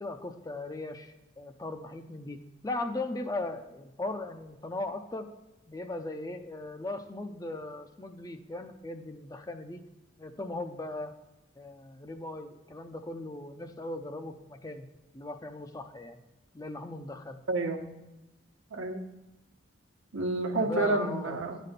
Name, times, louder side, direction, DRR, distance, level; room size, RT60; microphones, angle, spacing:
voice 1, 0.0-5.3 5.7-9.8 10.2-11.1 11.6-14.9 15.1-16.2 16.5-17.4 20.5-21.4, left 2 dB, 15° left, 6 dB, 0.4 m, -38 dB
voice 2, 17.5-17.9 18.7-19.0 20.1-21.6, right 2 dB, 80° right, 4 dB, 1.1 m, -29 dB
9.8 x 4.2 x 6.5 m, 1.0 s
head